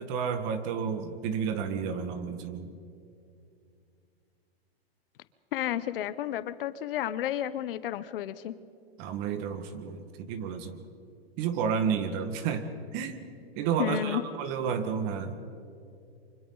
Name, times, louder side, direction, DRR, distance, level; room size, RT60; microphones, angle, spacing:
voice 1, 0.0-2.7 9.0-10.8 11.4-12.7 12.9-13.2 13.5-15.4, right 6 dB, 40° right, 9 dB, 1.7 m, -31 dB
voice 2, 5.5-8.5 13.8-14.2, left 11 dB, 60° left, 14 dB, 0.9 m, -31 dB
28.5 x 25.0 x 4.0 m, 2.5 s
hypercardioid pair, 140°, 31 cm